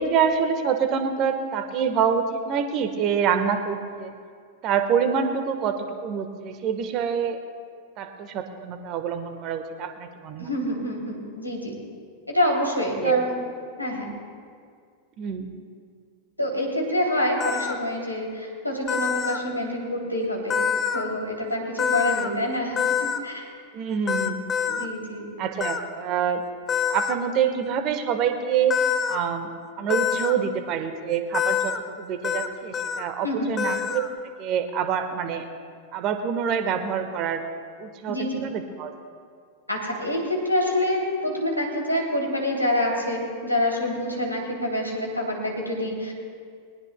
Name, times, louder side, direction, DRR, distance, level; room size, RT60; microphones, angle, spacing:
voice 1, 0.0-4.1 4.6-7.4 8.0-10.5 13.0-13.2 15.2-15.5 23.7-24.4 25.4-26.4 26.9-28.7 29.1-29.5 29.8-34.0 34.4-35.4 35.9-37.4 37.8-38.9, right 7 dB, 35° right, 8 dB, 1.3 m, -26 dB
voice 2, 10.4-11.8 12.3-13.4 13.8-14.1 16.4-20.6 20.9-23.5 24.7-25.3 33.2-33.5 38.1-38.4 39.7-46.1, left 1 dB, 85° left, -1 dB, 2.8 m, -26 dB
sound 1, 17.4-17.7 18.9-19.4 20.5-21.0 21.8-22.3 22.8-23.2 24.1-24.9 25.6-25.8 26.7-27.2 28.7-29.2 29.9-30.3 31.3-31.8 32.2-32.5 32.7-33.0 33.6-34.1, left 8 dB, 25° left, 0.8 m, -25 dB
20.5 x 20.0 x 2.2 m, 2.1 s
figure-of-eight pair, 90°, 0 cm